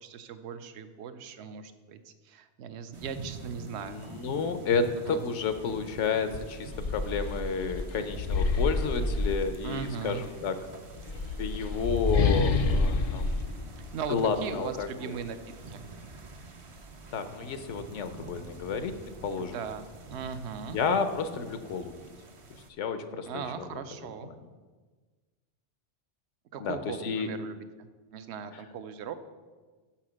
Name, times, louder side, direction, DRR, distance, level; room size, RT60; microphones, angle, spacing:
voice 1, 0.0-4.0 5.0-5.2 9.6-10.2 13.8-15.4 15.7-15.8 19.4-20.8 23.3-24.3 26.5-29.1, right 6 dB, 70° right, 11 dB, 0.8 m, -39 dB
sound 1, 2.9-22.7, right 3 dB, 45° right, 0.4 m, -47 dB
voice 2, 3.7-10.5 11.4-13.3 14.1-15.2 17.1-18.9 19.2-19.6 20.7-21.9 22.8-23.7 26.6-27.3 28.5-28.6, left 5 dB, 80° left, 9 dB, 1.0 m, -31 dB
sound 2, 5.8-5.9 6.3-9.9 10.9-14.5, left 3 dB, 55° left, 0.4 m, -29 dB
6.4 x 5.8 x 6.1 m, 1.4 s
omnidirectional pair, 1.2 m